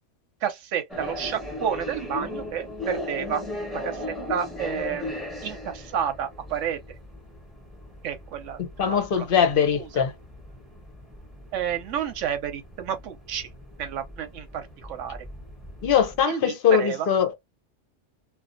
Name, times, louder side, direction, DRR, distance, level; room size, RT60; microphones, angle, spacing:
voice 1, 0.4-3.4 3.7-4.0 4.3-6.8 8.0-9.2 9.7-10.0 11.5-13.5 13.8-15.2 16.3-17.1, right 9 dB, 80° right, 0.9 m, -30 dB
sound 1, 0.9-16.2, left 1 dB, ahead, 0.8 m, -38 dB
voice 2, 8.6-10.1 15.8-17.4, left 8 dB, 55° left, 0.7 m, -22 dB
2.6 x 2.2 x 2.5 m
omnidirectional pair, 1.3 m